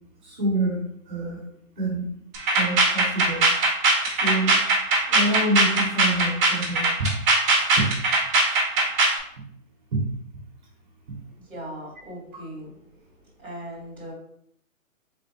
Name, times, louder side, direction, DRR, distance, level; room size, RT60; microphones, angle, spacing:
voice 1, 0.2-1.4 1.8-2.1 2.5-3.5 4.1-4.6 5.1-7.1 7.8-7.9, right 1 dB, 35° right, -3 dB, 1.1 m, -26 dB
sound 1, 2.3-9.2, right 2 dB, 10° right, 0.8 m, -20 dB
voice 2, 11.4-12.7 13.4-14.1, right 1 dB, 5° left, -13 dB, 1.2 m, -38 dB
4.0 x 3.6 x 2.9 m, 0.69 s
hypercardioid pair, 165°, 41 cm